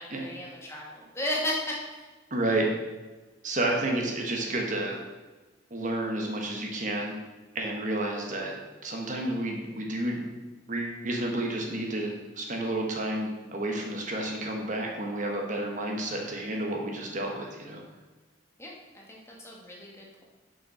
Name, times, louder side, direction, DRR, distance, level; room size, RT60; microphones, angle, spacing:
voice 1, 0.0-2.1 18.6-20.3, left 1 dB, 15° left, -3 dB, 1.8 m, -35 dB
voice 2, 2.3-2.7 3.4-5.0 5.7-7.2 7.5-8.5 8.8-10.3 10.7-17.8, right 1 dB, 40° right, 0 dB, 1.3 m, -30 dB
6.9 x 6.3 x 6.1 m, 1.2 s
head